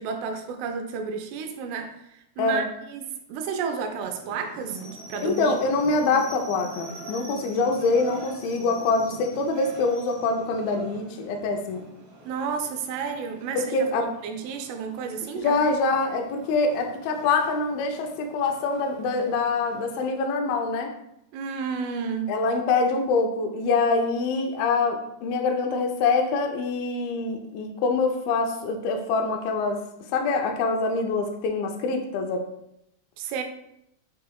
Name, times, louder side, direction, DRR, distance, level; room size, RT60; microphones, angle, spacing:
voice 1, 0.0-5.6 12.3-15.7 21.3-22.4 33.2-33.4, right 6 dB, 80° right, 5 dB, 2.6 m, -32 dB
sound 1, 4.0-20.1, right 2 dB, 60° right, 2.0 m, -44 dB
voice 2, 5.2-11.9 13.6-14.1 15.4-20.9 22.3-29.8 30.1-32.4, left 3 dB, 85° left, 3 dB, 2.1 m, -25 dB
7.4 x 3.1 x 2.3 m, 0.79 s
omnidirectional pair, 5.0 m